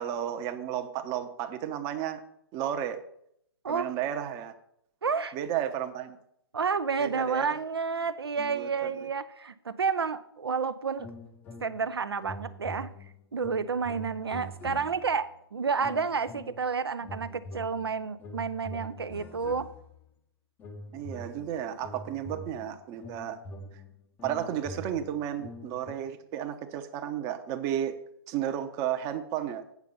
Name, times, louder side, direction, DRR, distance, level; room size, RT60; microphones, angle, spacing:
voice 1, 0.0-2.2 2.5-3.0 3.7-4.5 5.3-6.2 7.0-7.5 8.4-9.1 20.9-23.4 24.2-28.0 28.3-29.6, right 10 dB, 25° right, 8 dB, 0.8 m, -33 dB
voice 2, 5.0-5.4 6.5-11.1 11.6-12.9 13.3-19.7, right 5 dB, 70° right, 12 dB, 0.5 m, -30 dB
sound 1, 11.0-11.9 12.2-15.3 15.8-16.7 17.0-20.1 20.6-25.9, left 1 dB, 15° left, 0.7 m, -44 dB
8.3 x 6.7 x 5.3 m, 0.73 s
figure-of-eight pair, 125°, 14 cm